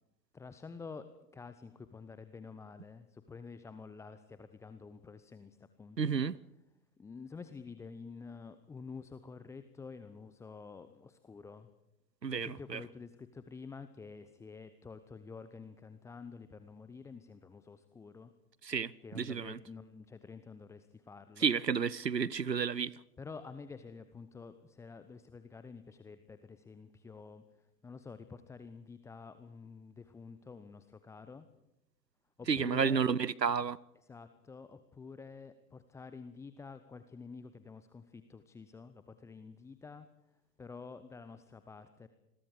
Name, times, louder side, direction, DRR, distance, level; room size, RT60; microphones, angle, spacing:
voice 1, 0.3-6.1 7.0-11.7 12.3-18.3 19.0-21.5 23.2-31.5 32.4-33.1 34.1-40.1 40.6-42.1, left 5 dB, 5° left, 0.7 m, -49 dB
voice 2, 6.0-6.4 12.2-12.8 18.6-19.6 21.4-23.0 32.5-33.8, right 6 dB, 90° right, 0.8 m, -31 dB
28.0 x 21.5 x 5.0 m
figure-of-eight pair, 105°, 48 cm